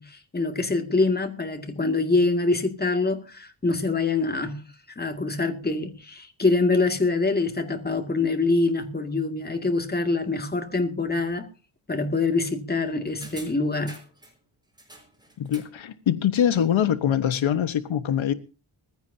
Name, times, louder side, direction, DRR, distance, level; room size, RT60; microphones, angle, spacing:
voice 1, 0.0-4.6 5.0-11.5 11.9-14.0, left 3 dB, 20° left, 2.2 m, -25 dB
sound 1, 13.2-14.4 14.8-15.8 16.1-16.2, right 1 dB, 10° right, 4.9 m, -46 dB
voice 2, 15.4-18.3, left 9 dB, 80° left, 1.2 m, -23 dB
20.5 x 15.5 x 2.8 m
wide cardioid pair, 120°, 47 cm